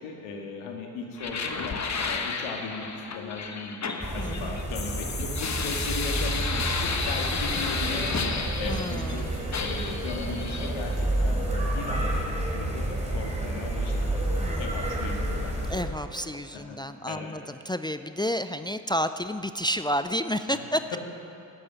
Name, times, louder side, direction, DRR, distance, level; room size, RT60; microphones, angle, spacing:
voice 1, 0.0-1.8 2.0-2.9 3.1-8.2 8.6-9.2 9.6-14.0 14.6-15.5 16.1-16.8 17.0-17.3 20.5-20.6, left 4 dB, 80° left, 1 dB, 2.0 m, -37 dB
sound 1, 1.2-9.2 9.5-10.7, left 4 dB, 35° left, 1.3 m, -32 dB
sound 2, 4.0-15.8, right 1 dB, 15° right, 3.5 m, -30 dB
voice 2, 4.2-4.6 8.6-9.3 14.3-14.7 15.7-21.0, equal, 10° left, 10 dB, 0.4 m, -31 dB
13.5 x 8.7 x 7.5 m, 2.7 s
supercardioid pair, 55°, 48 cm